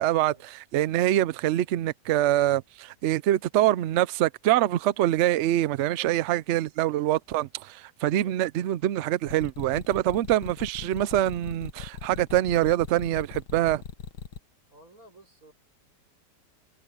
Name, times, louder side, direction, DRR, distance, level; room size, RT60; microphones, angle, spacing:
voice 1, 0.0-13.8, right 13 dB, 85° right, 0.6 m, -25 dB
sound 1, 9.3-14.4, left 7 dB, 75° left, 2.0 m, -39 dB
voice 2, 14.7-15.5, right 1 dB, 50° right, 6.5 m, -54 dB
omnidirectional pair, 1.9 m